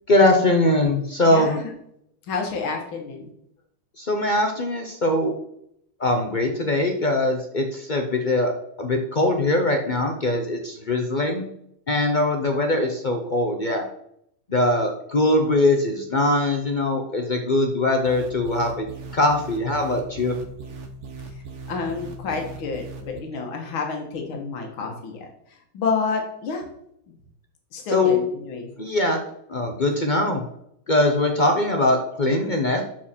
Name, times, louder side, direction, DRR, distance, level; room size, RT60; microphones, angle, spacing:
voice 1, 0.1-1.6 4.0-5.3 6.0-8.5 8.8-11.5 11.9-13.9 14.5-18.8 19.1-20.4 27.9-28.2 28.8-29.2 29.5-30.4 30.9-32.8, left 2 dB, 65° left, 3 dB, 0.4 m, -21 dB
voice 2, 1.2-1.7 2.3-3.3 21.7-25.3 25.7-26.6 27.7-28.7, left 4 dB, 85° left, 2 dB, 2.2 m, -29 dB
sound 1, 18.0-23.2, right 3 dB, 45° right, 1.0 m, -39 dB
12.0 x 4.7 x 4.3 m, 0.73 s
omnidirectional pair, 2.2 m